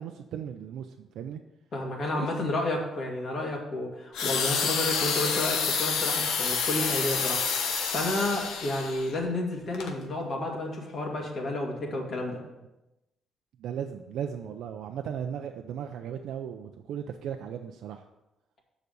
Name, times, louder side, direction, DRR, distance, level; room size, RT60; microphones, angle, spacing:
voice 1, 0.0-1.4 2.1-2.3 13.6-18.0, right 8 dB, 80° right, 5 dB, 0.5 m, -36 dB
voice 2, 1.7-7.4 7.7-12.4, left 2 dB, 55° left, -1 dB, 2.3 m, -31 dB
sound 1, 4.1-9.1 9.7-9.9, left 6 dB, 90° left, 1.0 m, -28 dB
6.8 x 5.1 x 6.6 m, 0.96 s
cardioid pair, 90°, 0 cm